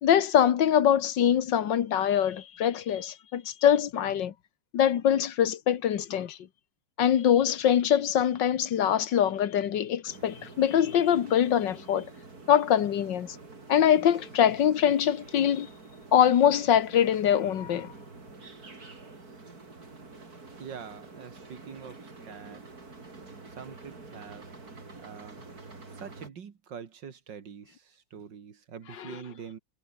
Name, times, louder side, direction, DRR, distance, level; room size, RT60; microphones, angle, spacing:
voice 1, 0.0-4.3 4.7-6.4 7.0-12.1 12.5-13.4 13.7-15.7 16.1-17.9 29.0-29.2, left 9 dB, 85° left, 1.9 m, -23 dB
sound 1, 10.0-26.3, right 3 dB, 55° right, 4.4 m, -48 dB
voice 2, 20.6-22.6 23.6-24.5 25.0-25.4 25.9-29.6, right 7 dB, 85° right, 2.5 m, -44 dB
omnidirectional pair, 1.9 m